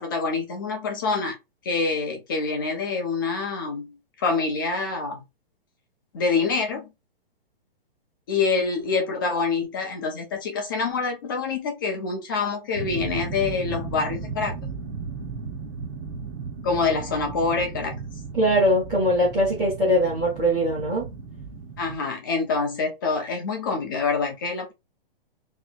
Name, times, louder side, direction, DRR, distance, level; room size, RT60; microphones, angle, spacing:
voice 1, 0.0-1.4 1.6-5.2 6.1-6.9 8.3-14.5 16.6-18.0 21.8-24.7, left 4 dB, 20° left, 0.8 m, -26 dB
sound 1, 12.7-22.0, right 4 dB, 30° right, 0.8 m, -35 dB
voice 2, 18.3-21.1, equal, 5° right, 0.5 m, -21 dB
3.5 x 3.2 x 3.9 m
hypercardioid pair, 180°, 29 cm